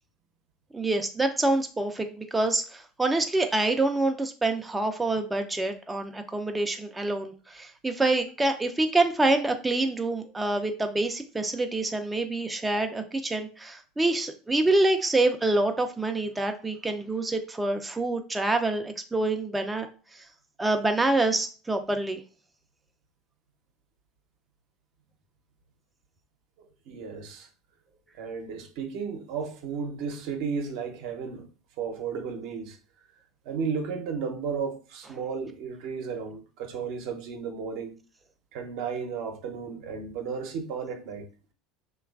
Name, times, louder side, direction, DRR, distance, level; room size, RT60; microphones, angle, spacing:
voice 1, 0.7-19.9 20.1-20.3 20.6-22.2, right 2 dB, 15° right, 0.3 m, -26 dB
voice 2, 26.9-27.5 28.1-31.5 31.8-32.8 33.5-37.9 38.5-41.2, right 5 dB, 65° right, 0.6 m, -34 dB
3.0 x 2.3 x 2.3 m
hypercardioid pair, 85°, 0 cm